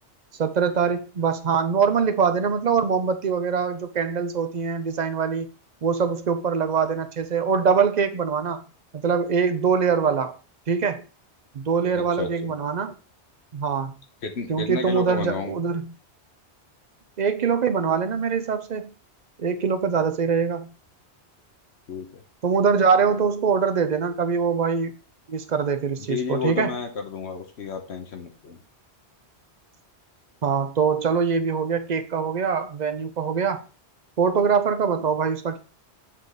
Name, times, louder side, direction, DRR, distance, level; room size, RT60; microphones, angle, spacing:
voice 1, 0.4-5.5 5.8-8.6 8.9-10.4 10.7-11.0 11.5-12.9 13.5-13.9 14.5-15.9 17.2-18.9 19.4-20.7 22.4-24.9 25.3-26.8 30.4-33.7 34.2-35.6, right 6 dB, 45° right, 0.6 m, -23 dB
voice 2, 11.9-12.5 14.2-15.5 21.9-22.2 26.1-28.6, left 5 dB, 70° left, 1.2 m, -31 dB
7.4 x 3.4 x 4.0 m
omnidirectional pair, 1.2 m